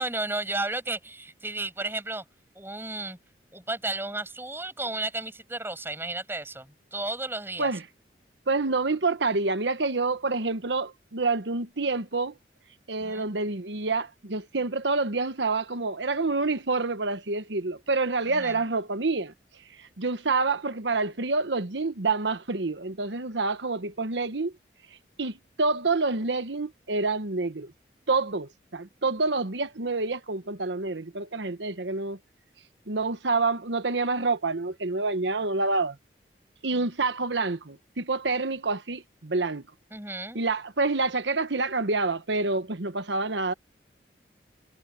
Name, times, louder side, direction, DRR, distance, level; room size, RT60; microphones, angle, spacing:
voice 1, 0.0-2.2 2.6-3.2 3.5-7.7 13.0-13.3 18.3-18.6 39.9-40.4, right 2 dB, 15° right, 7.3 m, -33 dB
voice 2, 8.5-12.3 12.9-19.3 19.8-24.5 25.2-27.7 28.1-32.2 32.9-36.0 36.6-39.6 40.3-43.5, right 3 dB, 85° right, 1.2 m, -27 dB
head